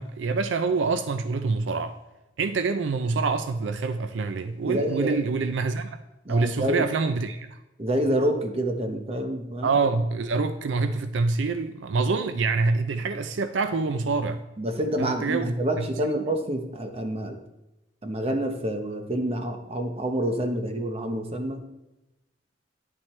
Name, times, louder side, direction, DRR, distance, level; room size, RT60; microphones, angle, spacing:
voice 1, 0.0-2.0 2.4-6.0 6.3-7.6 9.6-14.4 15.0-15.8, right 4 dB, 80° right, 0.5 m, -26 dB
voice 2, 4.6-5.2 6.2-6.8 7.8-9.8 14.6-17.4 18.0-21.7, right 1 dB, 35° right, 1.0 m, -27 dB
10.5 x 7.4 x 3.2 m
head